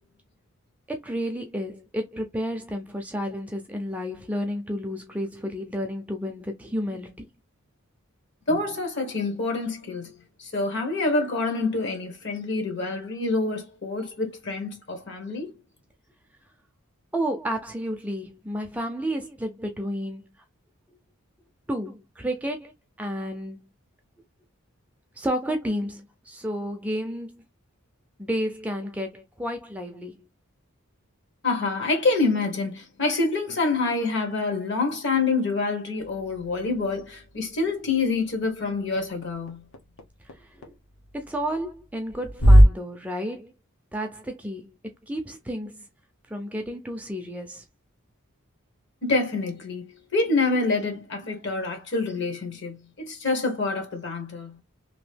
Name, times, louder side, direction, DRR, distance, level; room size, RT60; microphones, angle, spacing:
voice 1, 0.9-7.2 17.1-20.3 21.7-22.7 23.0-23.7 25.2-27.4 28.2-30.2 40.2-40.7 41.1-43.5 43.9-44.7 45.1-45.9 46.3-47.6, equal, 5° right, 0.4 m, -31 dB
voice 2, 8.5-10.1 10.4-15.5 31.4-39.6 49.0-54.6, left 3 dB, 55° left, 1.2 m, -27 dB
sound 1, 36.0-42.6, equal, 80° left, 0.9 m, -24 dB
2.9 x 2.6 x 3.2 m
head